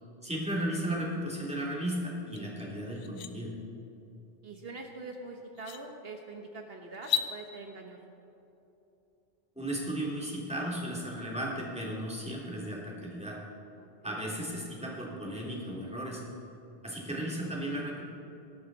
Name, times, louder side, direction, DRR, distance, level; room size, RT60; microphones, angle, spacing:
voice 1, 0.2-3.5 9.5-13.4 14.0-16.2 16.8-18.1, right 1 dB, 5° right, -4 dB, 2.9 m, -35 dB
sound 1, 2.4-2.5 2.9-3.3 4.9-5.0 5.5-5.8 6.9-7.3, left 8 dB, 85° left, 1.1 m, -33 dB
voice 2, 4.4-8.0 13.8-14.2, right 3 dB, 70° right, 2 dB, 1.3 m, -44 dB
19.0 x 12.5 x 4.1 m, 3.0 s
omnidirectional pair, 1.1 m